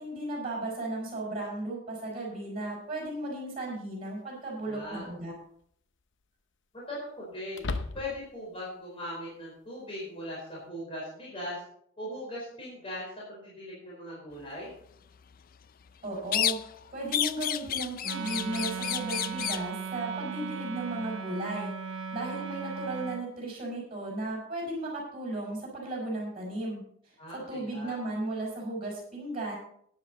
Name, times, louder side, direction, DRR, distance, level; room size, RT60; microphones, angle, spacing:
voice 1, 0.0-5.3 16.0-16.6 16.9-21.7 22.1-29.6, right 2 dB, 30° right, -4 dB, 5.4 m, -35 dB
sound 1, 2.9-3.0 4.8-5.3 5.6-5.7 7.5-8.4, left 3 dB, 60° left, 0.8 m, -36 dB
voice 2, 4.7-5.1 6.9-7.6 7.9-11.6 12.0-14.7 27.2-27.9, left 1 dB, 25° left, -6 dB, 4.5 m, -39 dB
sound 2, 16.3-16.8 17.1-19.7, left 11 dB, 45° left, 0.4 m, -31 dB
Wind instrument woodwind instrument, 18.0-23.3, right 6 dB, 65° right, 1.0 m, -37 dB
13.0 x 9.9 x 4.2 m, 0.66 s
head